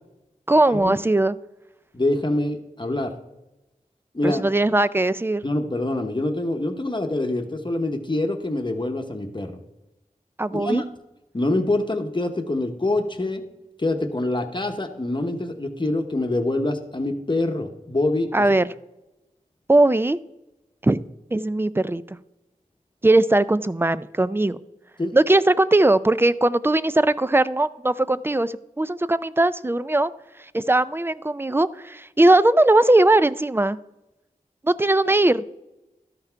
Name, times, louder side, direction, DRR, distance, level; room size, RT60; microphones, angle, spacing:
voice 1, 0.5-1.3 4.2-5.4 10.4-10.8 18.3-18.6 19.7-20.2 20.8-21.0 21.3-22.2 23.0-24.6 25.1-30.1 30.5-33.8 34.6-35.4, right 2 dB, 15° right, 15 dB, 0.3 m, -19 dB
voice 2, 1.9-3.1 4.1-4.4 5.4-9.6 10.5-10.8 11.3-13.4 13.8-18.4 25.0-25.1, left 2 dB, 35° left, 5 dB, 0.9 m, -25 dB
12.5 x 5.8 x 4.5 m, 0.97 s
wide cardioid pair, 65°, 14 cm